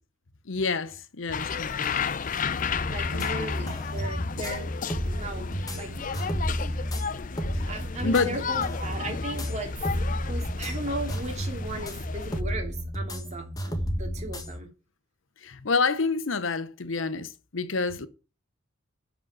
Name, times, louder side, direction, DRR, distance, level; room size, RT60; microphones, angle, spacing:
voice 1, 0.5-2.2 3.1-3.8 7.5-7.7 8.0-8.4 15.4-18.1, left 4 dB, 70° left, 0.8 m, -29 dB
sound 1, 1.3-12.4, left 6 dB, 40° left, 0.5 m, -33 dB
sound 2, 2.7-14.6, equal, 20° left, 1.5 m, -32 dB
voice 2, 2.9-4.7 5.1-6.1 7.6-9.7 10.1-14.7, right 2 dB, 35° right, 2.9 m, -37 dB
11.0 x 5.2 x 7.4 m
head